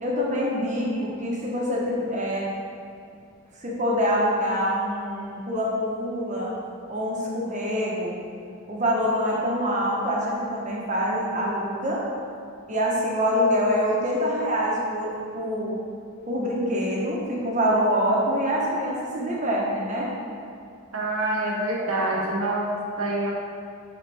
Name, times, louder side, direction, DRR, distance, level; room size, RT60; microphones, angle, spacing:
voice 1, 0.0-2.5 3.6-6.5 6.9-8.2 8.7-12.0 12.7-15.8 16.3-20.1, equal, 35° right, -4 dB, 1.3 m, -25 dB
voice 2, 20.9-22.7 23.0-23.3, right 1 dB, 85° right, -2 dB, 1.4 m, -26 dB
10.0 x 4.3 x 3.5 m, 2.4 s
head